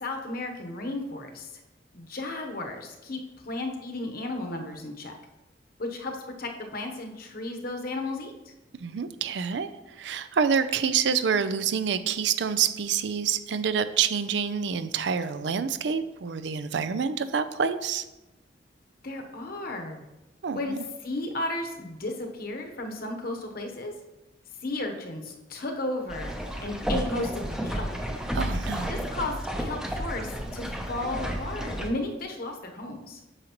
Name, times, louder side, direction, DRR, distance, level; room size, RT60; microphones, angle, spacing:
voice 1, 0.0-1.5 1.9-5.1 5.8-8.3 19.0-20.0 20.5-20.8 21.0-23.9 24.6-26.3 26.6-27.9 28.9-33.2, left 2 dB, 55° left, 3 dB, 1.0 m, -34 dB
voice 2, 8.7-9.7 10.0-18.0 20.4-20.6 28.3-28.9, right 6 dB, 65° right, 12 dB, 0.4 m, -27 dB
sound 1, 26.1-31.9, equal, 5° right, 0.7 m, -32 dB
8.8 x 6.5 x 3.0 m, 1.0 s
head